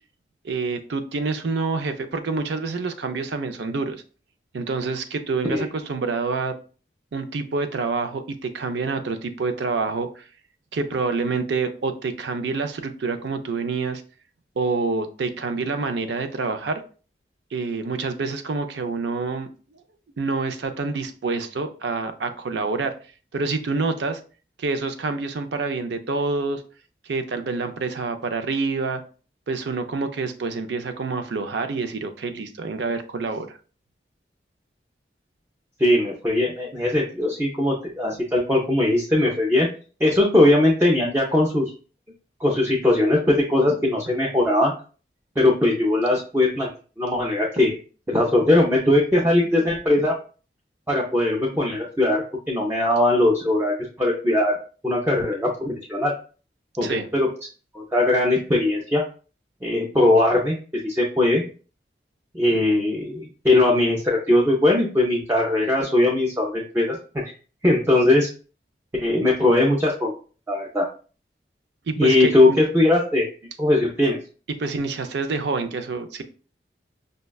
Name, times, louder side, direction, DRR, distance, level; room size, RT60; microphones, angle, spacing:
voice 1, 0.4-4.0 4.5-6.5 7.1-10.2 10.7-14.0 14.6-16.8 17.5-19.5 20.2-22.9 23.3-24.2 24.6-26.6 27.1-29.0 29.5-33.5 56.8-57.1 71.9-72.3 74.6-76.2, right 4 dB, 80° right, 8 dB, 0.4 m, -27 dB
voice 2, 35.8-39.7 40.0-41.7 42.4-44.7 45.4-46.7 47.0-47.8 48.1-50.1 50.9-54.6 54.8-56.1 56.8-57.3 57.7-59.0 59.6-61.4 62.3-67.0 67.6-68.3 69.0-70.1 70.5-70.9 72.0-73.3 73.6-74.2, left 1 dB, 15° right, -2 dB, 0.4 m, -20 dB
5.1 x 2.2 x 2.2 m, 0.38 s
head